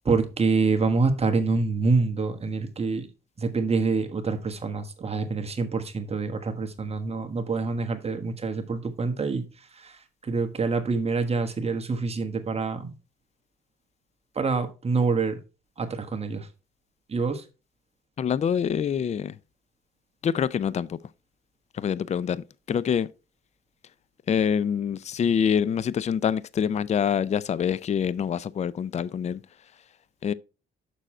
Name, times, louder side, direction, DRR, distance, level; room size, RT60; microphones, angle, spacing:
voice 1, 0.0-3.1 3.4-12.9 14.3-15.4 15.8-16.5 17.1-17.4, right 4 dB, 30° right, 1.3 m, -26 dB
voice 2, 18.2-19.3 20.2-21.0 21.8-23.1 24.3-29.4 30.2-30.3, left 8 dB, 35° left, 0.4 m, -25 dB
6.7 x 6.2 x 4.3 m
cardioid pair, 90°, 20 cm